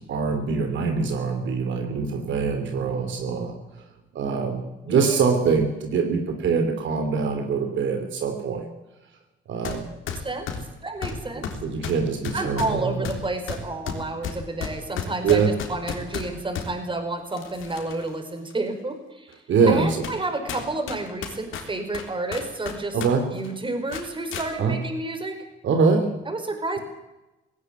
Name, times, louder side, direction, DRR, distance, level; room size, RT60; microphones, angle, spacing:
voice 1, 0.0-3.5 4.1-8.7 9.5-9.9 11.3-13.1 15.2-15.5 19.5-20.1 22.9-23.3 24.6-24.8 25.6-26.1, right 5 dB, 70° right, 6 dB, 3.0 m, -23 dB
voice 2, 4.9-5.2 10.1-10.5 10.8-11.5 12.3-15.4 15.7-23.0 23.3-25.4 26.2-26.8, right 2 dB, 25° right, 6 dB, 4.9 m, -30 dB
sound 1, 9.6-9.8 10.1-16.7 17.3-18.1 18.5-18.6 19.3-19.4 20.0-20.2 20.5-23.1 23.4-23.5 23.9-24.5, left 6 dB, 85° left, 3.6 m, -33 dB
18.0 x 17.0 x 9.4 m, 1.0 s
cardioid pair, 90°, 20 cm